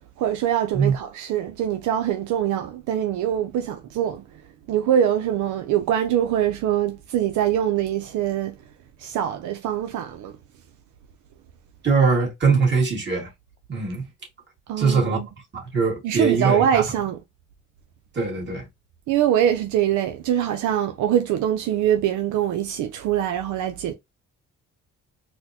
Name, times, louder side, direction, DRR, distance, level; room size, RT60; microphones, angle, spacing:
voice 1, 0.2-4.2 4.7-8.5 9.0-10.3 14.7-15.3 16.0-17.2 19.1-23.9, right 10 dB, 80° right, 0.5 m, -23 dB
voice 2, 11.8-13.3 13.7-14.0 14.8-15.2 15.5-16.8 18.1-18.7, right 5 dB, 35° right, 1.9 m, -21 dB
4.2 x 2.1 x 2.8 m
cardioid pair, 90°, 30 cm